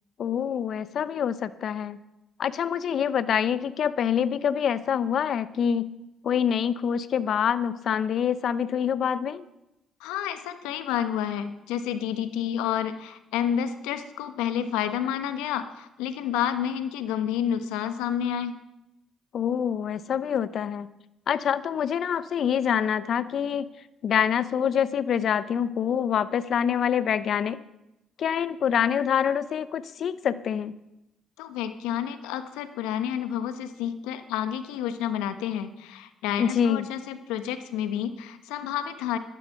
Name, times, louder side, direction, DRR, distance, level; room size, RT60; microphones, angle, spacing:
voice 1, 0.2-2.0 2.4-5.9 6.2-9.4 19.3-20.9 21.3-23.7 24.0-27.6 28.2-30.7 36.4-36.8, left 8 dB, 60° left, 16 dB, 0.7 m, -26 dB
voice 2, 10.0-18.6 31.4-39.2, left 9 dB, 85° left, 10 dB, 1.1 m, -30 dB
13.5 x 12.5 x 5.9 m, 0.92 s
hypercardioid pair, 55°, 0 cm